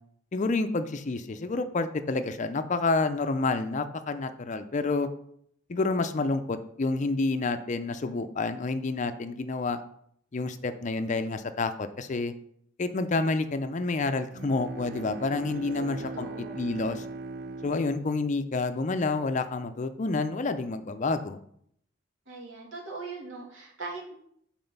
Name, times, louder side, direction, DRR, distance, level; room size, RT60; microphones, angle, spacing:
voice 1, 0.3-5.1 5.7-9.8 10.3-12.3 12.8-17.0 17.6-21.4, left 3 dB, 40° left, 10 dB, 0.5 m, -29 dB
Bowed string instrument, 14.3-19.4, right 3 dB, 55° right, 0.5 m, -41 dB
voice 2, 15.7-16.6 22.3-24.1, right 3 dB, 80° right, -3 dB, 2.6 m, -40 dB
7.8 x 4.3 x 5.3 m, 0.69 s
head